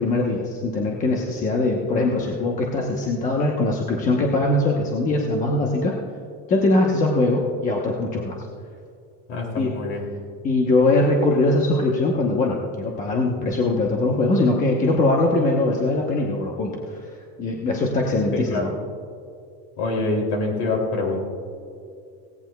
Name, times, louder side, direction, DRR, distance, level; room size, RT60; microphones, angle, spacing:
voice 1, 0.0-5.9 6.5-8.4 9.6-9.7 10.4-16.8 17.4-18.7, left 2 dB, 25° left, -1 dB, 0.9 m, -21 dB
voice 2, 9.3-10.1 18.3-18.7 19.8-21.2, left 3 dB, 45° left, 0 dB, 2.8 m, -25 dB
17.0 x 17.0 x 2.3 m, 2.4 s
cardioid pair, 165°, 34 cm